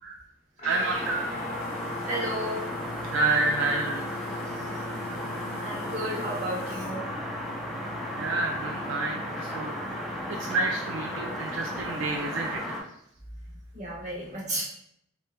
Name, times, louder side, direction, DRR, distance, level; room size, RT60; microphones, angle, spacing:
Guitar, 0.6-12.0, left 2 dB, 35° left, 0.7 m, -41 dB
voice 1, 0.6-1.2 3.0-4.1 7.5-7.6 8.2-9.8 10.3-12.8, right 3 dB, 70° right, 0 dB, 0.3 m, -29 dB
sound 1, 0.7-6.8, left 3 dB, 80° left, 0.3 m, -47 dB
sound 2, 0.9-12.8, equal, ahead, 0.4 m, -35 dB
voice 2, 1.8-2.7 4.5-4.8 5.5-7.0 13.5-14.6, right 1 dB, 35° right, -6 dB, 1.1 m, -34 dB
3.2 x 3.1 x 2.2 m, 0.71 s
head